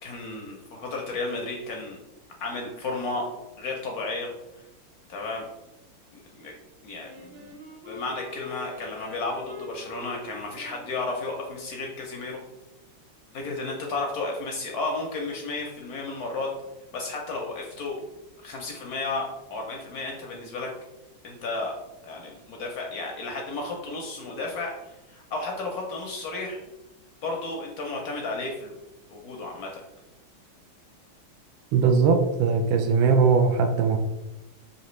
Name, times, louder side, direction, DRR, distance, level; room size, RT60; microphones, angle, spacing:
voice 1, 0.0-2.0 2.4-3.3 3.6-4.3 5.1-5.5 6.1-6.5 6.8-7.6 7.9-12.4 13.3-16.5 16.9-18.0 18.4-20.7 21.2-21.7 22.0-26.6 27.2-28.8 29.1-29.8, left 3 dB, 70° left, 1 dB, 0.9 m, -33 dB
Wind instrument woodwind instrument, 7.0-12.1, left 2 dB, 50° right, 0.6 m, -44 dB
voice 2, 31.7-34.0, right 5 dB, 85° right, 4 dB, 1.4 m, -20 dB
5.8 x 2.7 x 3.1 m, 0.97 s
omnidirectional pair, 2.3 m